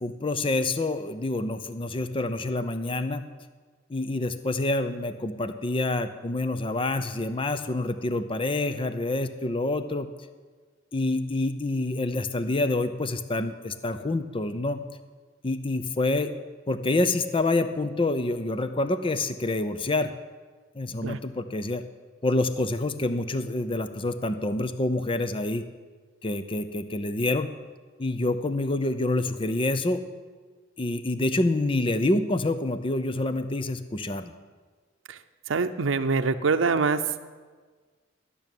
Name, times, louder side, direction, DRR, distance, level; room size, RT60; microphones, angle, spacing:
voice 1, 0.0-3.2 3.9-10.1 10.9-14.8 15.4-16.3 16.7-20.1 20.8-21.8 22.2-25.6 26.2-27.5 28.0-30.0 30.8-34.3, left 2 dB, 30° left, 10 dB, 0.6 m, -27 dB
voice 2, 35.5-37.0, right 4 dB, 90° right, 8 dB, 0.6 m, -24 dB
12.5 x 6.9 x 9.1 m, 1.5 s
head